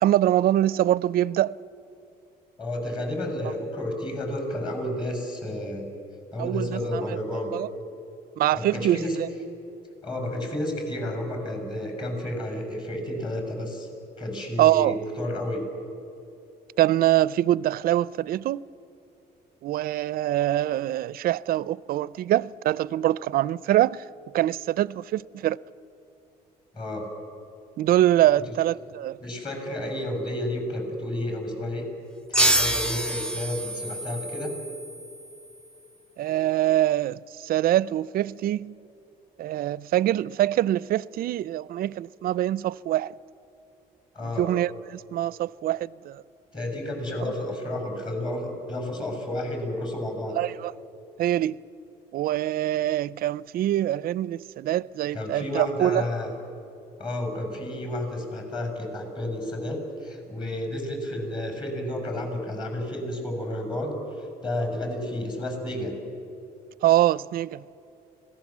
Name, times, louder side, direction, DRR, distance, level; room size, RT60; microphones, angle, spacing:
voice 1, 0.0-1.5 6.4-7.0 7.5-7.7 8.4-9.3 14.6-15.0 16.8-18.7 19.6-24.0 24.3-25.6 27.8-29.2 36.2-38.7 39.4-43.1 44.4-46.2 50.4-50.7 51.2-51.6 52.1-56.0 66.8-67.6, right 13 dB, 60° right, 0.5 m, -24 dB
voice 2, 2.6-5.8 6.3-7.5 8.5-9.2 10.0-13.9 14.2-15.6 26.7-27.1 28.4-28.5 29.2-31.8 32.3-34.5 44.1-44.5 46.5-50.4 55.1-56.3 57.0-65.9, left 1 dB, 25° left, 6.8 m, -31 dB
sound 1, 32.3-35.6, right 1 dB, 5° left, 1.0 m, -27 dB
26.0 x 17.5 x 7.4 m
cardioid pair, 110°, 17 cm